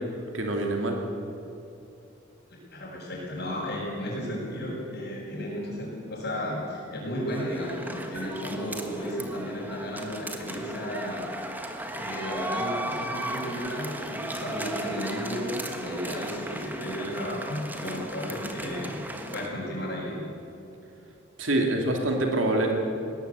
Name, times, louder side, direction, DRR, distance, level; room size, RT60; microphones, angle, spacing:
voice 1, 0.3-1.0 21.4-22.7, right 2 dB, 80° right, 1 dB, 2.6 m, -25 dB
voice 2, 2.7-11.3 11.9-20.2, equal, 55° left, -8 dB, 6.2 m, -34 dB
sound 1, 7.3-19.5, right 1 dB, 10° right, 1.5 m, -36 dB
20.0 x 18.5 x 8.2 m, 2.7 s
head